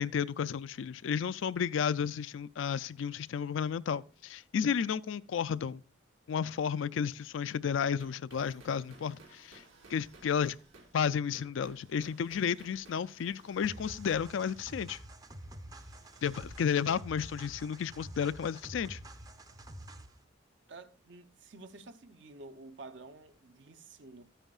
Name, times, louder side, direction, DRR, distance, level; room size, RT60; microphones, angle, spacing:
voice 1, 0.0-5.8 6.3-9.6 9.9-10.6 10.9-15.0 16.2-19.0, left 7 dB, 75° left, 0.4 m, -32 dB
sound 1, 8.0-18.6, right 2 dB, 90° right, 2.6 m, -59 dB
sound 2, 13.6-20.2, right 1 dB, 20° right, 0.5 m, -48 dB
voice 2, 20.7-24.2, right 3 dB, 65° right, 0.7 m, -50 dB
13.5 x 9.0 x 2.4 m
head